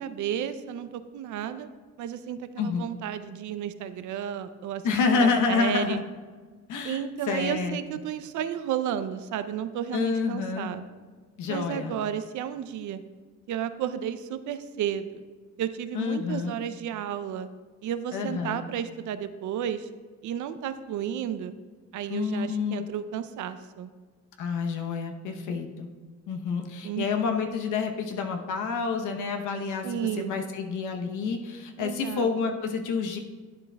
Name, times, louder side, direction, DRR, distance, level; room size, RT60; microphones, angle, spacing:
voice 1, 0.0-1.7 2.0-4.8 5.1-6.0 6.8-10.9 11.5-13.0 13.5-15.2 15.6-17.5 17.8-19.9 20.2-21.5 21.9-23.9 26.8-27.4 29.8-30.3 31.8-32.6, right 9 dB, 75° right, 11 dB, 0.6 m, -32 dB
voice 2, 2.6-2.9 4.8-6.0 6.7-7.0 7.3-7.8 9.9-10.7 11.4-11.9 15.9-16.5 18.1-18.6 22.1-22.8 24.4-25.9 26.3-33.2, left 5 dB, 85° left, 4 dB, 0.9 m, -28 dB
11.5 x 8.4 x 2.3 m, 1.5 s
cardioid pair, 90°, 30 cm